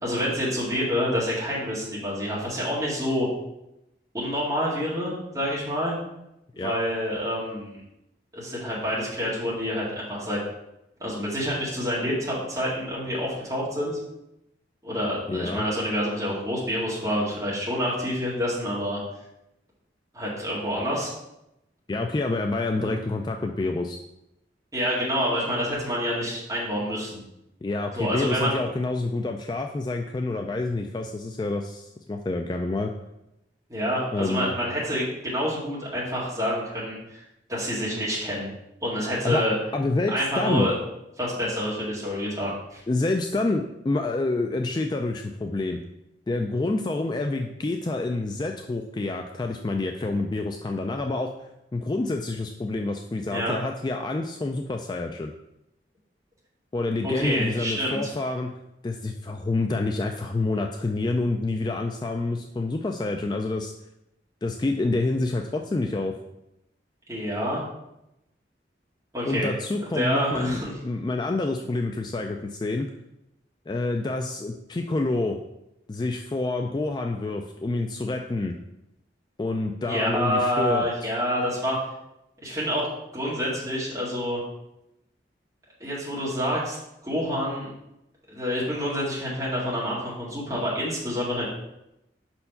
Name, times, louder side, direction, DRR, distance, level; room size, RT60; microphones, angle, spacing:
voice 1, 0.0-3.3 4.1-6.0 6.5-7.8 8.3-10.4 11.0-14.0 14.8-19.0 20.1-21.1 22.8-23.0 24.7-27.2 27.9-28.6 33.7-37.2 37.5-38.5 38.8-39.5 40.1-40.8 41.2-42.8 53.3-53.6 57.0-58.1 67.1-67.6 69.1-69.5 69.9-70.7 79.8-81.8 82.4-82.9 83.1-84.4 85.8-86.8 87.0-87.7 88.3-91.4, equal, 20° right, -7 dB, 2.2 m, -27 dB
voice 2, 15.3-15.7 21.9-24.0 27.6-32.9 34.1-34.5 39.2-39.4 39.7-40.7 42.9-45.8 46.3-51.3 51.7-55.3 56.7-58.5 58.8-63.7 64.4-66.1 69.2-72.9 73.7-75.4 75.9-78.6 79.4-80.9, left 2 dB, 25° left, 4 dB, 0.3 m, -27 dB
5.5 x 4.4 x 5.5 m, 0.87 s
head